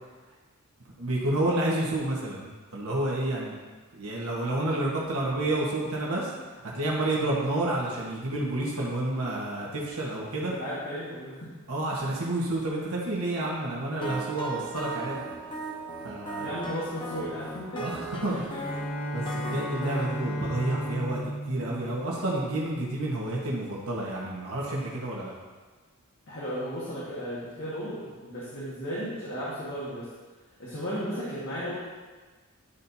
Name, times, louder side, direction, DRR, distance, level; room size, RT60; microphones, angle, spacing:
voice 1, 1.0-3.6 3.9-6.3 6.7-10.5 11.7-15.2 16.0-16.5 17.8-18.5 19.1-21.2 21.5-25.3, right 1 dB, 70° right, -4 dB, 1.4 m, -29 dB
voice 2, 10.6-11.5 12.0-12.2 16.4-17.8 18.3-18.4 26.3-30.1 30.6-31.8, equal, 55° left, -10 dB, 1.7 m, -35 dB
sound 1, 14.0-20.0, right 1 dB, 20° left, 0.7 m, -37 dB
Bowed string instrument, 18.5-22.8, equal, 80° left, 2.2 m, -34 dB
11.5 x 4.3 x 2.7 m, 1.3 s
head